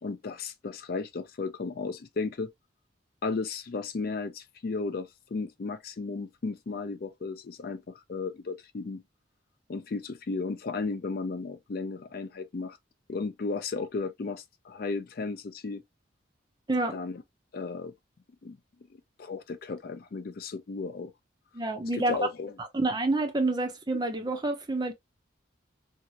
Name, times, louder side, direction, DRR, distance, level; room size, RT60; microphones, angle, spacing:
voice 1, 0.0-2.5 3.2-9.0 9.7-12.8 13.1-15.8 16.9-17.2 17.5-17.9 18.4-18.6 19.2-21.1 21.9-22.6, left 4 dB, 50° left, 0.4 m, -34 dB
voice 2, 21.5-22.2 22.7-24.9, right 2 dB, 20° right, 0.5 m, -28 dB
2.7 x 2.4 x 2.7 m
head